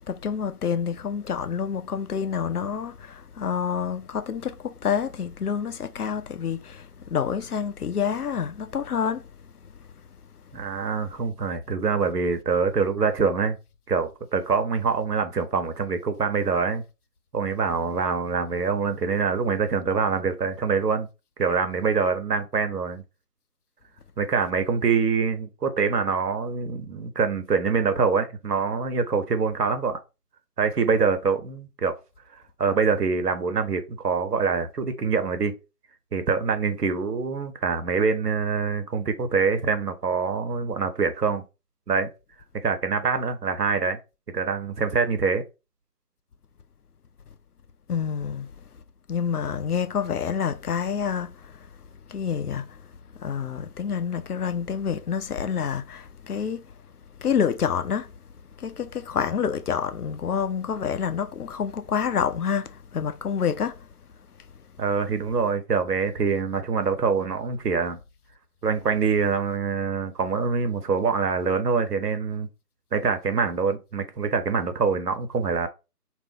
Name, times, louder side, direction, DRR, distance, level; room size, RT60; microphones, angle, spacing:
voice 1, 0.1-9.2 47.9-48.5 49.1-51.5 52.1-52.8 53.2-56.6 57.2-58.1 58.6-63.7, left 7 dB, 70° left, 0.5 m, -28 dB
voice 2, 10.5-13.6 13.9-16.8 17.3-21.1 21.4-23.0 24.2-30.0 30.6-32.0 32.6-35.5 36.1-41.4 41.9-42.1 42.6-44.0 44.3-45.4 64.8-68.0 68.6-72.5 72.9-75.7, right 5 dB, 80° right, 0.9 m, -25 dB
2.5 x 2.1 x 3.6 m
figure-of-eight pair, 165°, 47 cm